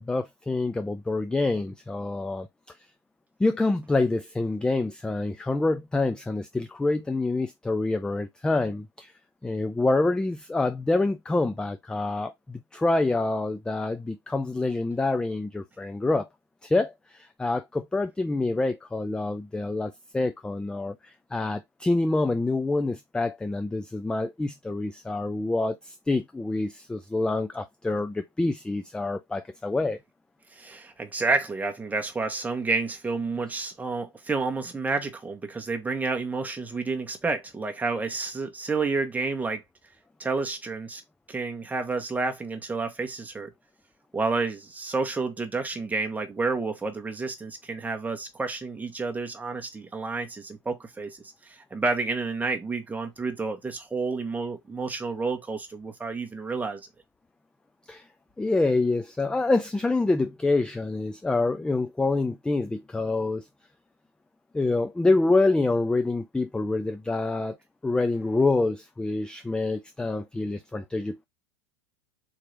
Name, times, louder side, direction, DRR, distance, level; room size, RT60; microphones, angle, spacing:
voice 1, 0.0-2.5 3.4-9.1 9.4-16.3 16.6-30.0 57.9-58.0 58.4-63.5 64.5-67.6 67.8-71.3, left 2 dB, 5° left, 0.3 m, -26 dB
voice 2, 30.5-39.6 40.2-41.0 41.3-43.5 44.1-51.2 51.4-56.8, right 3 dB, 10° right, 1.1 m, -30 dB
3.9 x 2.9 x 3.2 m
hypercardioid pair, 110°, 15 cm